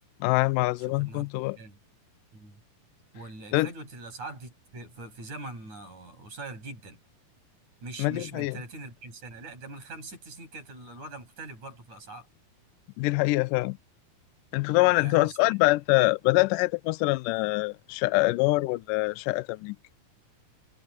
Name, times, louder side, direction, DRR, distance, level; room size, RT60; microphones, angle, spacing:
voice 1, 0.2-1.6 3.5-3.7 8.0-8.6 13.0-13.8 14.5-19.8, left 21 dB, 80° left, 2.0 m, -24 dB
voice 2, 0.8-1.3 1.6-1.8 2.3-2.6 3.1-7.0 7.8-12.3 14.9-15.6, right 2 dB, 50° right, 8.6 m, -42 dB
omnidirectional pair, 4.2 m